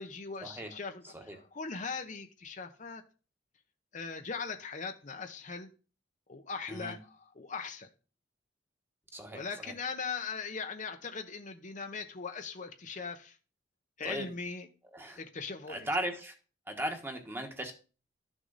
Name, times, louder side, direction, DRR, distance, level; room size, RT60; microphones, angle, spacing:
voice 1, 0.0-1.0 1.3-3.0 3.9-5.7 6.3-7.0 7.4-7.9 9.3-13.4 14.0-14.7 15.2-15.9, left 5 dB, 40° left, 0.9 m, -39 dB
voice 2, 1.0-1.4 6.7-6.9 9.1-9.7 14.0-14.3 14.9-15.2 15.7-16.3 16.7-17.7, right 1 dB, 10° right, 1.4 m, -37 dB
12.5 x 6.3 x 4.1 m
head